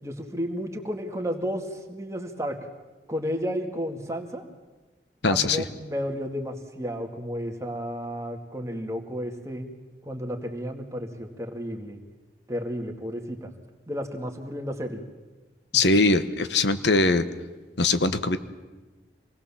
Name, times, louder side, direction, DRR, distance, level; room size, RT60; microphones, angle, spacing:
voice 1, 0.0-2.6 3.1-4.4 5.3-9.7 10.1-12.0 12.5-13.5 13.9-15.0, equal, 15° right, 3 dB, 2.1 m, -32 dB
voice 2, 5.2-5.6 15.7-17.2 17.8-18.4, left 3 dB, 75° left, 11 dB, 1.1 m, -21 dB
26.0 x 19.5 x 7.3 m, 1.2 s
head